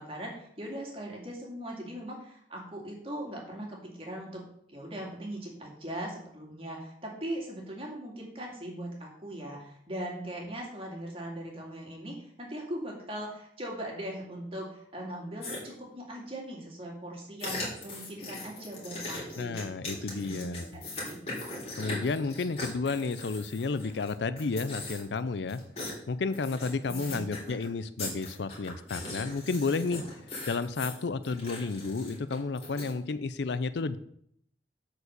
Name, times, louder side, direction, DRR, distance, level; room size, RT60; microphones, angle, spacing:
voice 1, 0.0-4.4 4.7-19.7 20.0-20.5 20.7-21.2 26.9-27.4, right 1 dB, 30° right, -1 dB, 2.4 m, -40 dB
sound 1, 15.4-15.6 17.4-24.1 24.4-25.2 25.5-25.9 26.3-27.7 28.0-32.9, left 2 dB, 35° left, 3.2 m, -39 dB
voice 2, 19.4-20.7 21.8-25.6 26.1-30.0 30.5-34.0, left 4 dB, 75° left, 14 dB, 0.5 m, -32 dB
8.4 x 4.8 x 6.7 m, 0.69 s
head